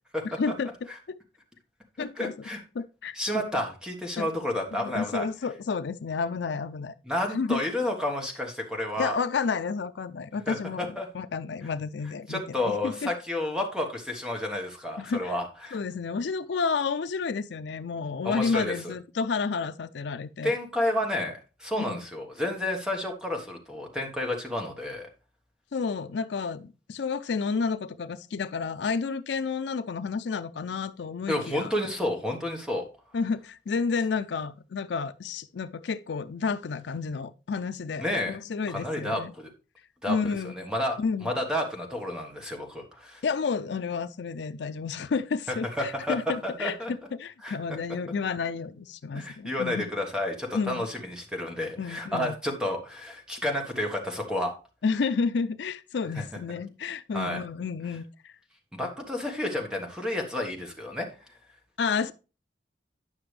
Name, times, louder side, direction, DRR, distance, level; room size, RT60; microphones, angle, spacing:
voice 1, 0.4-0.7 1.1-1.2 2.0-2.3 2.8-3.5 4.2-4.3 4.7-6.9 7.3-7.6 9.0-13.1 15.0-15.3 15.7-20.5 21.8-22.0 25.7-31.7 33.1-39.3 40.1-40.5 41.0-41.3 43.2-49.9 50.5-50.9 51.8-52.4 54.8-58.3 61.8-62.1, left 5 dB, 70° left, 0.4 m, -31 dB
voice 2, 2.2-2.6 3.1-5.3 7.0-9.2 10.5-11.1 12.3-15.8 18.2-18.9 20.4-25.1 31.3-32.8 38.0-38.4 38.7-39.5 40.0-43.2 45.5-46.2 46.4-46.9 47.4-47.8 49.1-54.5 56.2-56.3 57.1-57.4 58.7-61.1, left 1 dB, 5° right, 1.3 m, -31 dB
9.7 x 5.9 x 3.2 m
head